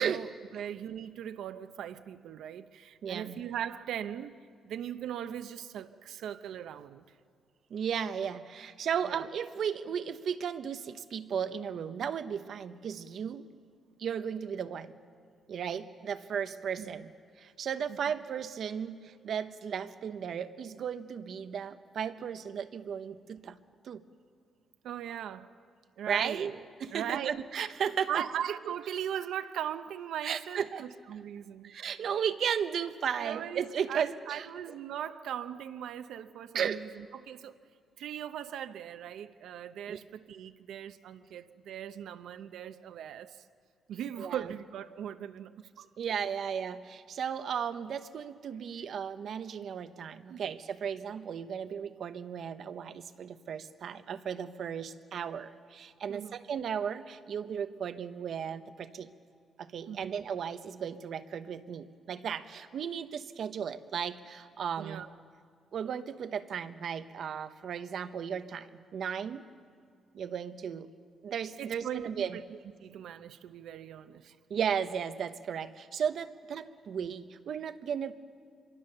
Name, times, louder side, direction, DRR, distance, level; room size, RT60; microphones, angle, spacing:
voice 1, 0.0-4.3 4.6-7.0 9.0-9.2 16.8-17.0 17.9-18.0 24.8-25.6 26.0-27.3 28.1-31.7 33.1-37.5 38.0-43.4 43.9-45.9 50.3-50.5 56.1-56.4 59.9-60.2 64.8-65.1 71.6-74.3, right 10 dB, 80° right, 0.8 m, -39 dB
voice 2, 3.0-3.4 7.7-13.5 14.0-15.0 15.5-17.1 17.4-23.6 23.8-24.0 26.1-26.5 26.8-28.2 30.2-30.9 31.6-34.5 36.5-36.8 39.9-40.0 44.2-44.5 46.0-59.1 59.6-65.0 65.7-69.4 70.1-70.9 71.2-72.4 74.5-78.1, right 7 dB, 55° right, 1.0 m, -35 dB
26.0 x 23.5 x 6.8 m
cardioid pair, 155°, 0 cm